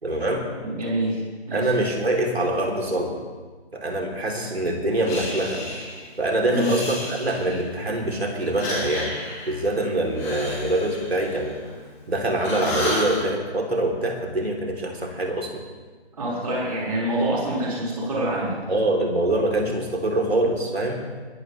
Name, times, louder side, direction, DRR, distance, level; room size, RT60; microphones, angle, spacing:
voice 1, 0.0-0.5 1.5-3.2 3.7-5.7 6.2-9.1 9.5-11.6 12.1-15.6 18.7-21.0, right 1 dB, 70° right, 1 dB, 3.5 m, -24 dB
voice 2, 0.6-1.7 6.4-6.8 16.1-18.6, right 1 dB, 35° right, -6 dB, 5.4 m, -26 dB
Breathing, 5.0-6.1 6.5-7.7 8.4-12.0 12.3-13.2, left 1 dB, 15° left, 4.3 m, -32 dB
21.0 x 12.5 x 3.4 m, 1.4 s
figure-of-eight pair, 170°, 33 cm